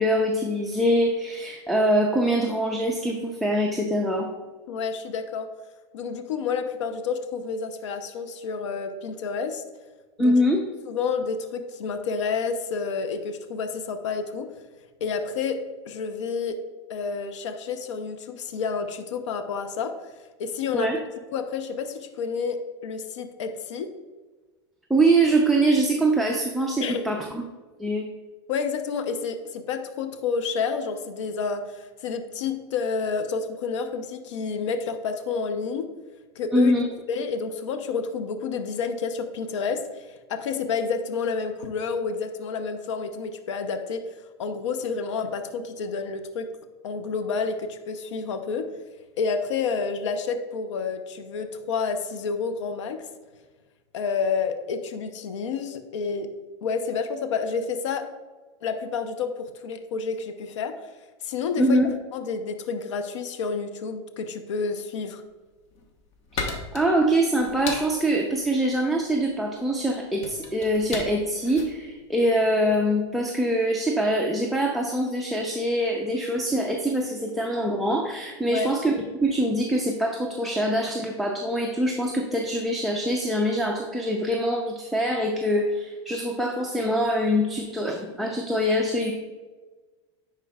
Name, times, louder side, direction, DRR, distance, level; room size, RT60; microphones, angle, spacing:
voice 1, 0.0-4.3 10.2-10.6 20.7-21.0 24.9-27.4 27.8-28.0 36.5-36.8 61.6-61.9 66.3-89.1, right 1 dB, ahead, 1 dB, 0.6 m, -24 dB
voice 2, 4.7-5.5 5.9-9.6 10.2-10.3 10.9-14.5 15.0-16.6 16.9-19.9 20.4-20.9 21.3-23.9 26.8-27.0 28.5-35.9 36.4-36.7 37.1-44.0 44.4-46.5 46.8-48.7 49.2-53.1 53.9-56.3 56.6-58.1 58.6-60.8 61.2-61.8 62.1-65.2 78.4-78.7, left 5 dB, 85° left, 8 dB, 0.7 m, -29 dB
sound 1, 65.5-72.9, left 3 dB, 45° left, 1.2 m, -37 dB
10.0 x 4.5 x 2.3 m, 1.3 s
supercardioid pair, 115°, 15 cm